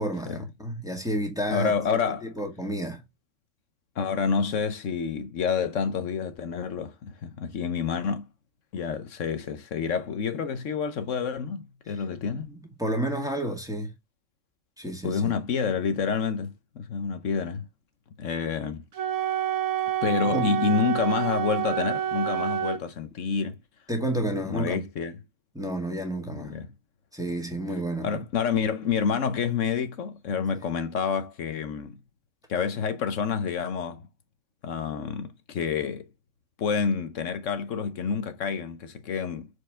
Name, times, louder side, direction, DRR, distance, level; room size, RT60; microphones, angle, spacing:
voice 1, 0.0-1.7 2.2-3.0 11.9-12.0 12.5-13.9 14.8-15.3 20.2-20.6 23.9-24.8 25.5-26.6 27.1-28.2, right 1 dB, 5° right, 2.0 m, -30 dB
voice 2, 1.5-2.3 4.0-8.3 8.7-12.5 15.0-17.7 18.2-18.8 20.0-23.5 24.5-25.2 26.3-26.7 28.0-32.0 32.5-34.1 34.6-36.1 36.6-39.5, left 6 dB, 75° left, 1.2 m, -28 dB
Wind instrument woodwind instrument, 18.9-22.8, right 11 dB, 75° right, 1.3 m, -28 dB
6.6 x 4.9 x 3.7 m
omnidirectional pair, 1.3 m